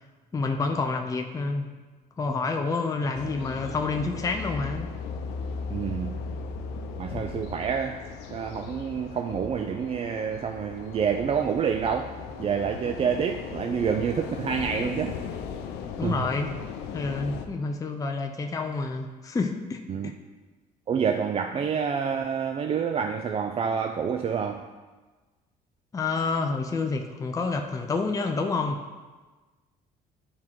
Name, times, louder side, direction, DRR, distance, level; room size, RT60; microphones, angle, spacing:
voice 1, 0.3-1.7 2.2-4.9 16.0-16.6 16.9-20.1 25.9-28.8, left 4 dB, 20° left, 3 dB, 0.5 m, -28 dB
sound 1, 3.2-17.5, left 5 dB, 90° left, 0.7 m, -37 dB
voice 2, 5.7-6.3 7.0-15.2 16.0-16.3 19.9-20.1 20.9-24.7, right 7 dB, 35° right, 5 dB, 0.4 m, -28 dB
9.7 x 3.7 x 4.6 m, 1.3 s
cardioid pair, 110°, 17 cm